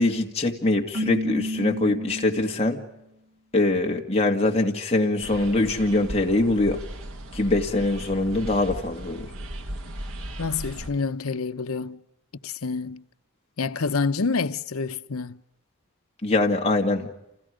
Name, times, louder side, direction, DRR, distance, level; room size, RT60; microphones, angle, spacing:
voice 1, 0.0-2.8 3.5-6.8 7.3-9.3 16.2-17.1, left 2 dB, 30° left, 2.2 m, -23 dB
Keyboard (musical), 0.9-2.9, equal, 70° right, 1.2 m, -31 dB
sound 1, 5.2-10.9, right 1 dB, 85° right, 1.7 m, -37 dB
voice 2, 10.4-12.0 12.4-13.0 13.6-15.4, left 4 dB, 80° left, 0.8 m, -27 dB
29.0 x 28.5 x 5.1 m
head